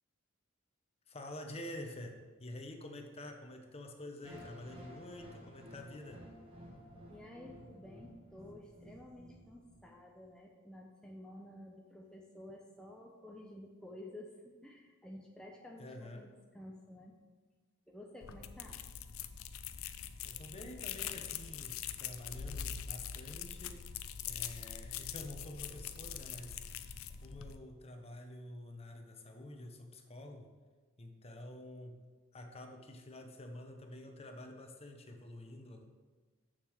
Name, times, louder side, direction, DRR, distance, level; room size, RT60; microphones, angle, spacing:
voice 1, 1.1-6.3 15.8-16.3 20.2-23.9 24.3-26.9 27.2-30.5 31.0-35.8, left 1 dB, 30° left, 4 dB, 0.9 m, -48 dB
sound 1, 4.2-10.3, equal, 25° right, 1.4 m, -54 dB
voice 2, 7.1-17.2 17.9-18.8, left 1 dB, 5° left, -1 dB, 0.7 m, -52 dB
sound 2, 18.2-27.6, left 9 dB, 85° left, 0.5 m, -43 dB
6.7 x 6.7 x 6.3 m, 1.4 s
head